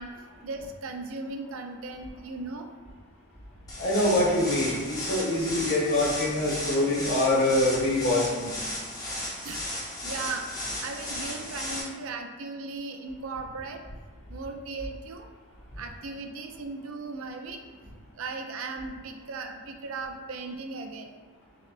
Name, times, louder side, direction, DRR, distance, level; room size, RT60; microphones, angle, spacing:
voice 1, 0.0-2.7 9.4-9.6 10.0-13.8 14.3-15.3 15.8-17.6 18.2-21.1, right 3 dB, 70° right, 4 dB, 0.4 m, -37 dB
sound 1, 3.7-11.8, left 1 dB, 15° left, 0.5 m, -35 dB
voice 2, 3.8-8.5, left 1 dB, 55° left, -5 dB, 1.0 m, -25 dB
6.3 x 2.1 x 2.5 m, 1.3 s
head